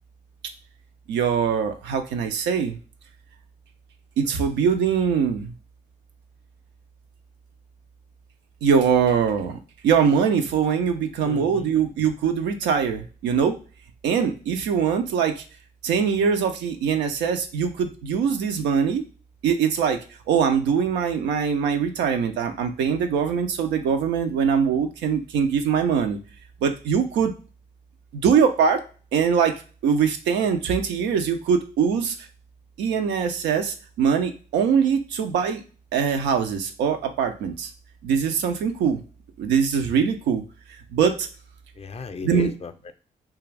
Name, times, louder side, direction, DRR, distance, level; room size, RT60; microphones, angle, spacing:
voice 1, 1.1-2.8 4.2-5.5 8.6-13.6 14.0-15.4 15.8-19.0 19.4-20.0 20.3-26.2 26.6-27.3 28.1-28.8 29.1-32.2 32.8-35.6 35.9-37.7 38.0-39.0 39.4-40.4 40.9-41.3 42.2-42.5, right 7 dB, 85° right, 0.5 m, -22 dB
voice 2, 11.2-11.7 41.8-42.9, left 5 dB, 35° left, 0.5 m, -35 dB
2.4 x 2.3 x 3.2 m
supercardioid pair, 50°, 18 cm